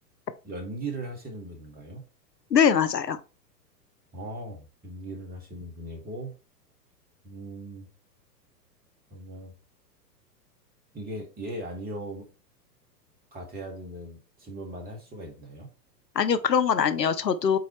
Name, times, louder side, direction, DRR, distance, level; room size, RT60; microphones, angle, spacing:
voice 1, 0.4-2.0 4.1-6.4 7.2-7.9 9.1-9.5 10.9-12.3 13.3-15.7, right 1 dB, 20° right, 2.2 m, -38 dB
voice 2, 2.5-3.2 16.2-17.6, left 7 dB, 85° left, 0.8 m, -22 dB
8.4 x 4.1 x 3.1 m
figure-of-eight pair, 100°, 48 cm